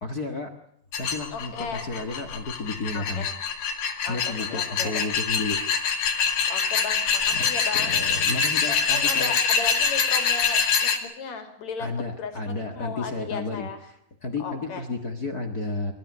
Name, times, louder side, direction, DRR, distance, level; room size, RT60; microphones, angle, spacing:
voice 1, 0.0-0.5 1.0-3.3 4.1-5.6 7.3-9.3 11.8-13.7 14.2-15.9, left 3 dB, 40° left, 7 dB, 1.6 m, -32 dB
sound 1, 0.9-11.0, left 6 dB, 80° left, 3.8 m, -25 dB
voice 2, 1.3-1.9 2.9-3.3 4.0-5.1 6.5-8.0 8.7-11.9 12.2-13.8 14.4-14.8, left 5 dB, 55° left, 7 dB, 4.0 m, -36 dB
25.0 x 13.5 x 9.7 m, 0.69 s
omnidirectional pair, 3.9 m